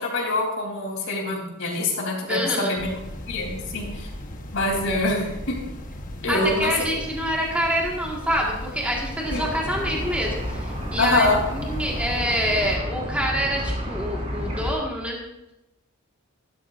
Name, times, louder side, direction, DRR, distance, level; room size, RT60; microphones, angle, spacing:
voice 1, 0.0-2.9 3.3-4.1 4.5-5.3 6.2-6.7 9.3-9.5 11.0-11.4, left 2 dB, 60° left, -1 dB, 3.6 m, -24 dB
voice 2, 2.3-2.7 6.3-15.2, equal, 5° right, -2 dB, 1.7 m, -26 dB
sound 1, 2.8-12.8, left 1 dB, 35° left, 1.2 m, -37 dB
sound 2, 9.2-14.7, equal, 30° right, 2.9 m, -31 dB
16.0 x 12.0 x 2.6 m, 0.97 s
head